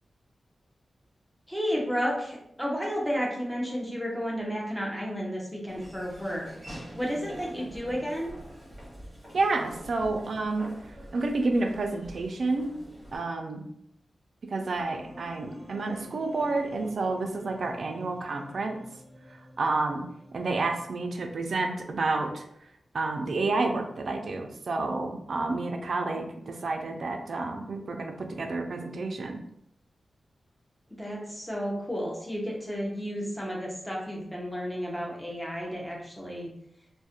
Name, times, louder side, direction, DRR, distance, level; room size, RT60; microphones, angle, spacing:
voice 1, 1.5-6.5 6.9-8.3 30.9-36.5, equal, 5° left, -3 dB, 0.6 m, -32 dB
Laughter / Walk footsteps, 5.7-13.2, equal, 20° right, 0.9 m, -45 dB
voice 2, 9.3-10.7 11.1-12.8 13.1-13.6 14.4-18.8 19.6-20.0 20.3-22.4 22.9-29.4, right 3 dB, 60° right, 4 dB, 0.3 m, -29 dB
sound 1, 14.7-21.7, left 1 dB, 30° left, 0.8 m, -50 dB
2.3 x 2.0 x 2.8 m, 0.76 s
wide cardioid pair, 130°, 0 cm